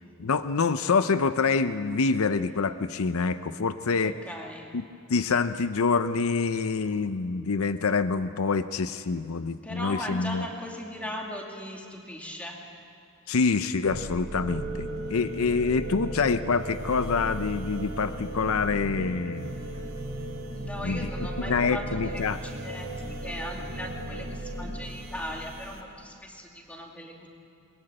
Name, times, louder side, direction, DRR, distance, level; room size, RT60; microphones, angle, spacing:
voice 1, 0.0-4.1 4.7-10.5 13.3-19.5 20.8-21.1 21.5-22.4, left 4 dB, 75° left, 12 dB, 0.6 m, -26 dB
voice 2, 4.2-4.7 9.6-12.6 20.5-27.3, equal, 5° left, 0 dB, 2.4 m, -38 dB
sound 1, 13.8-25.8, right 1 dB, 70° right, 3.0 m, -36 dB
21.0 x 21.0 x 8.9 m, 2.5 s
head